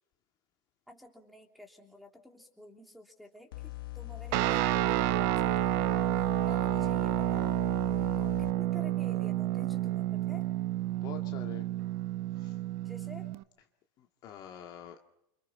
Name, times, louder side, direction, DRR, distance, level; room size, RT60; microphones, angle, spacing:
voice 1, 0.9-7.6 8.0-10.5 12.8-13.3, left 1 dB, ahead, 0 dB, 3.4 m, -51 dB
sound 1, 3.5-8.5, left 20 dB, 85° left, 1.4 m, -41 dB
Guitar, 4.3-13.4, right 16 dB, 50° right, 0.9 m, -30 dB
voice 2, 6.5-7.0 8.0-8.2 11.0-11.7 12.4-12.6 14.0-15.0, left 9 dB, 35° left, 3 dB, 2.0 m, -47 dB
29.5 x 26.0 x 4.5 m, 0.81 s
supercardioid pair, 145°, 11 cm